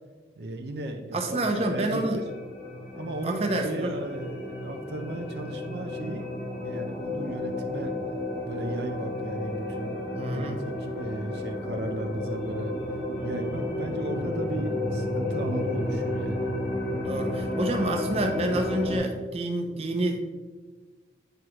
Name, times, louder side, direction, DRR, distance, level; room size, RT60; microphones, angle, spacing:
voice 1, 0.4-2.2 2.9-6.2 6.5-7.9 8.4-10.5 10.8-12.7 13.2-16.5, right 1 dB, 70° right, 4 dB, 0.5 m, -35 dB
voice 2, 1.1-2.2 3.2-4.0 10.1-10.6 17.0-20.2, right 1 dB, 35° right, 2 dB, 0.7 m, -28 dB
sound 1, 1.2-19.0, left 1 dB, 85° left, 2.0 m, -32 dB
9.0 x 4.8 x 3.0 m, 1.4 s
head